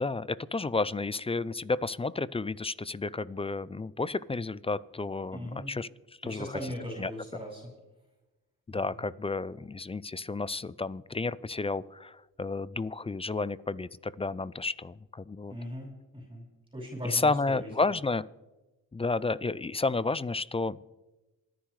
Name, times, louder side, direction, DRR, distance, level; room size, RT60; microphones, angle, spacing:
voice 1, 0.0-5.9 6.2-6.6 7.0-7.1 8.7-15.5 17.0-18.2 18.9-20.8, left 3 dB, 15° left, 19 dB, 0.4 m, -31 dB
voice 2, 5.3-5.7 6.2-7.7 8.8-9.0 15.5-16.5 16.7-17.9, equal, 15° right, -2 dB, 5.1 m, -39 dB
27.5 x 10.0 x 3.2 m, 1.1 s
supercardioid pair, 60°, 41 cm